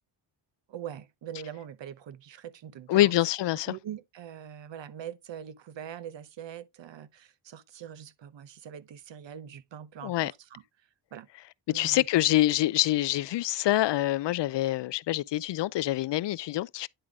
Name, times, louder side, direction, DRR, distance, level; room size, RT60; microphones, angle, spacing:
voice 1, 0.7-3.1 3.7-10.6 11.1-11.3 11.7-12.1, right 9 dB, 60° right, 1.0 m, -43 dB
voice 2, 2.9-3.7 10.0-10.3 11.7-16.9, left 15 dB, 60° left, 0.5 m, -25 dB
10.0 x 3.8 x 3.5 m
cardioid pair, 70°, 50 cm